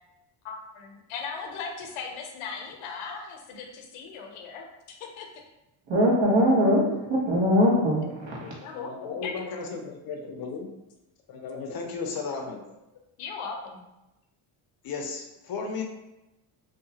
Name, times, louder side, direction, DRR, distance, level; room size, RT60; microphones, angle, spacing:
voice 1, 0.4-5.3 8.4-9.3 9.8-9.9 10.2-10.5 11.5-12.4 13.2-13.8, left 5 dB, 85° left, 3 dB, 0.7 m, -39 dB
voice 2, 5.9-8.5, equal, 60° right, -4 dB, 1.2 m, -22 dB
voice 3, 8.7-10.7 11.3-12.7 14.8-15.8, left 4 dB, 50° left, 3 dB, 0.5 m, -35 dB
2.7 x 2.2 x 2.7 m, 0.96 s
cardioid pair, 90°, 50 cm